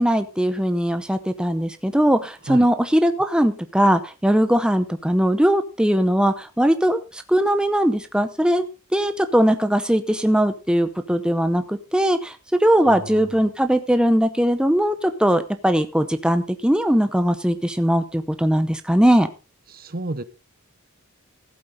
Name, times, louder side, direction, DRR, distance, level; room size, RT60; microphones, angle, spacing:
voice 1, 0.0-8.7 8.9-19.3, equal, 5° right, 0.7 m, -20 dB
voice 2, 12.9-13.5 19.7-20.2, right 2 dB, 45° right, 0.9 m, -32 dB
15.0 x 8.5 x 4.1 m
head